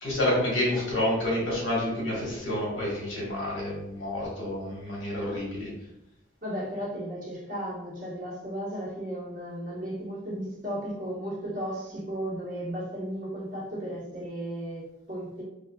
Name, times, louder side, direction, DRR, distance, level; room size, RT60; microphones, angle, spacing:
voice 1, 0.0-5.7, left 1 dB, 70° left, -5 dB, 1.5 m, -29 dB
voice 2, 6.4-15.4, equal, 45° right, -6 dB, 1.2 m, -35 dB
3.7 x 3.1 x 2.3 m, 0.88 s
head